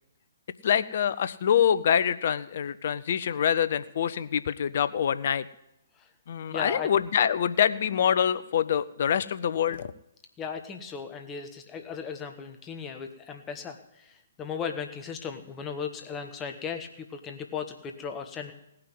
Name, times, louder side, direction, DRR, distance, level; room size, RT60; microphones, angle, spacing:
voice 1, 0.6-5.5 6.3-9.9, left 8 dB, 45° left, 15 dB, 0.6 m, -25 dB
voice 2, 6.5-6.9 10.4-18.5, left 6 dB, 15° left, 5 dB, 1.2 m, -37 dB
17.5 x 5.9 x 9.6 m, 0.83 s
figure-of-eight pair, 125°, 0 cm